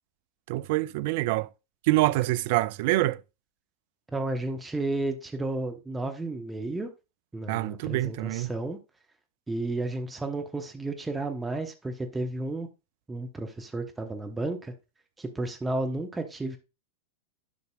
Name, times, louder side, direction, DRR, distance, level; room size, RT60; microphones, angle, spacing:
voice 1, 0.5-1.5 1.9-3.2 7.5-8.5, right 18 dB, 50° right, 0.3 m, -25 dB
voice 2, 4.1-6.9 7.3-8.8 9.5-12.7 13.1-14.7 15.2-16.6, right 2 dB, 10° right, 0.9 m, -32 dB
10.5 x 5.8 x 2.4 m
figure-of-eight pair, 90°, 0 cm